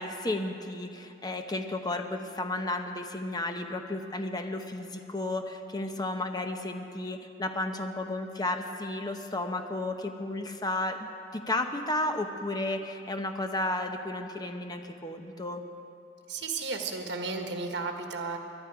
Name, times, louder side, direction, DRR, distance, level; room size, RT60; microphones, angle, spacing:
voice 1, 0.0-15.6, left 2 dB, 25° left, 6 dB, 0.9 m, -33 dB
voice 2, 16.3-18.4, right 4 dB, 75° right, 4 dB, 1.5 m, -33 dB
20.5 x 11.5 x 4.9 m, 2.8 s
head